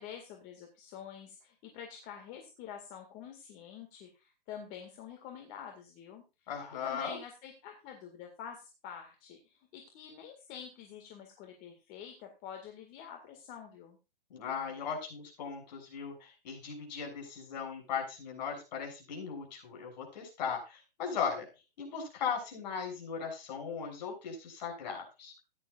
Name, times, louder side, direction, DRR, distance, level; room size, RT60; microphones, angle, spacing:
voice 1, 0.0-6.2 6.8-14.0, left 8 dB, 30° left, 3 dB, 2.1 m, -47 dB
voice 2, 6.5-7.2 14.3-21.5 21.8-25.3, left 6 dB, 50° left, 1 dB, 7.0 m, -38 dB
16.0 x 10.5 x 2.5 m, 0.28 s
hypercardioid pair, 135°, 29 cm